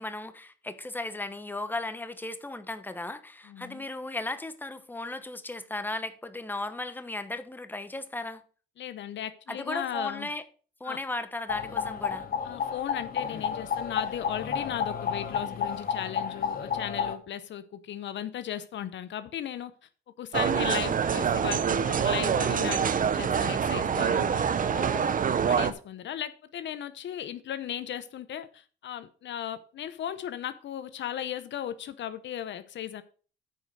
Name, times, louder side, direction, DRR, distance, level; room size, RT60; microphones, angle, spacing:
voice 1, 0.0-8.4 9.5-10.4 10.8-12.3 24.6-25.3, left 2 dB, 10° left, 1.1 m, -36 dB
voice 2, 3.5-3.8 8.8-10.3 10.8-11.0 12.4-19.7 20.2-22.9 23.1-24.4 24.8-24.9 25.5-33.0, left 10 dB, 65° left, 0.8 m, -36 dB
sound 1, 11.5-17.1, left 7 dB, 45° left, 1.4 m, -31 dB
sound 2, 20.3-25.7, right 7 dB, 45° right, 0.8 m, -26 dB
9.5 x 5.2 x 6.2 m
cardioid pair, 90°, 20 cm